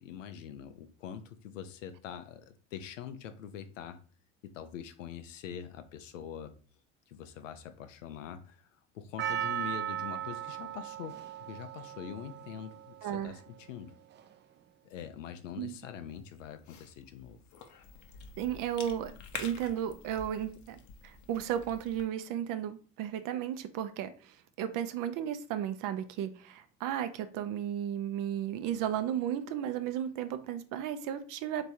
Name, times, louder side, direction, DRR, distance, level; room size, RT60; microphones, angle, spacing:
voice 1, 0.0-4.0 4.5-6.5 7.1-13.9 14.8-17.4, left 8 dB, 90° left, 0.6 m, -44 dB
Percussion, 9.2-13.5 14.2-14.3, right 10 dB, 30° right, 0.4 m, -37 dB
voice 2, 13.0-13.4 15.6-15.8 18.4-19.1 19.4-31.7, right 10 dB, 60° right, 0.7 m, -34 dB
Cough / Chewing mastication, 16.1-22.1, left 6 dB, 50° left, 0.9 m, -48 dB
3.5 x 3.0 x 4.3 m
hypercardioid pair, 75°, 37 cm